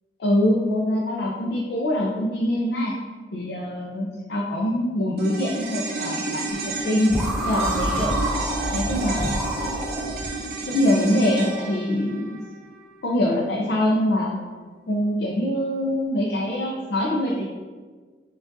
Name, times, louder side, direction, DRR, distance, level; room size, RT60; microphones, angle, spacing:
voice 1, 0.2-2.9 3.3-7.1 7.4-8.2 8.7-9.3 10.7-12.4 13.0-14.4 14.9-17.4, left 1 dB, 75° left, -2 dB, 0.5 m, -24 dB
sound 1, 5.2-13.7 13.9-14.0, right 3 dB, 60° right, 0.5 m, -32 dB
sound 2, 7.1-10.3, right 1 dB, ahead, 0.4 m, -27 dB
5.7 x 2.4 x 2.6 m, 1.4 s
head